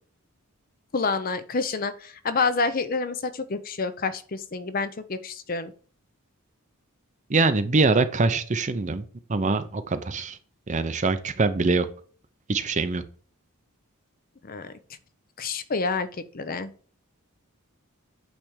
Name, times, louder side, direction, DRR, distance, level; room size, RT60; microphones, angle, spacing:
voice 1, 0.9-5.7 14.5-14.7 15.4-16.1 16.3-16.7, left 4 dB, 40° left, 11 dB, 0.6 m, -28 dB
voice 2, 7.3-9.0 9.3-10.4 10.7-11.9 12.5-13.0, right 3 dB, 35° right, 11 dB, 0.6 m, -23 dB
8.8 x 3.4 x 6.3 m, 0.42 s
head